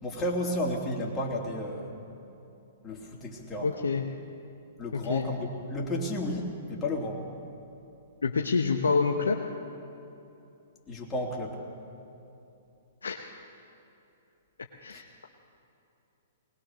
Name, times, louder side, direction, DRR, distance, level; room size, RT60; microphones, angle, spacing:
voice 1, 0.0-2.0 2.8-3.7 4.8-7.2 10.9-11.6 14.9-15.0, left 1 dB, 20° left, -2 dB, 3.2 m, -32 dB
voice 2, 3.6-4.0 4.9-5.3 8.2-9.4 13.0-13.2 14.8-15.0, left 4 dB, 85° left, 1 dB, 1.1 m, -27 dB
20.5 x 20.0 x 6.4 m, 2.9 s
hypercardioid pair, 120°, 0 cm